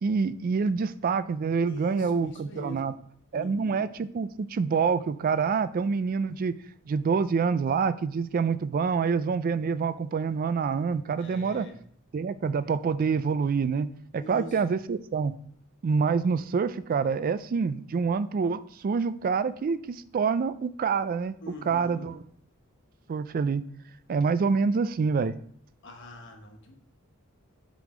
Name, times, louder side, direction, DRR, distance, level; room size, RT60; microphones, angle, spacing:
voice 1, 0.0-2.9 3.3-6.5 6.9-11.7 12.1-15.3 15.8-21.4 21.7-22.2 23.1-23.6 24.1-25.4, right 5 dB, 40° right, 14 dB, 0.3 m, -26 dB
voice 2, 1.7-2.9 3.3-3.8 11.2-11.7 14.2-14.6 21.4-22.1 25.8-26.7, left 1 dB, 60° left, 3 dB, 1.3 m, -43 dB
7.5 x 3.5 x 4.9 m, 0.65 s
head